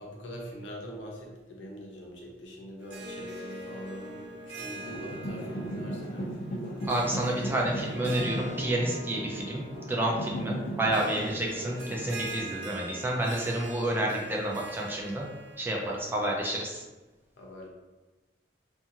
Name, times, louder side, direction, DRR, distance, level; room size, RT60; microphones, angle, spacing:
voice 1, 0.0-6.2 16.3-16.4 17.4-17.7, equal, 85° left, -2 dB, 0.7 m, -43 dB
Harp, 2.8-16.6, right 1 dB, 75° right, 0.5 m, -43 dB
sound 1, 4.8-12.4, right 1 dB, 45° left, 0.6 m, -37 dB
voice 2, 6.8-9.6 9.9-15.3 15.6-16.8, right 1 dB, 10° right, -2 dB, 0.4 m, -30 dB
2.5 x 2.4 x 2.8 m, 1.2 s
head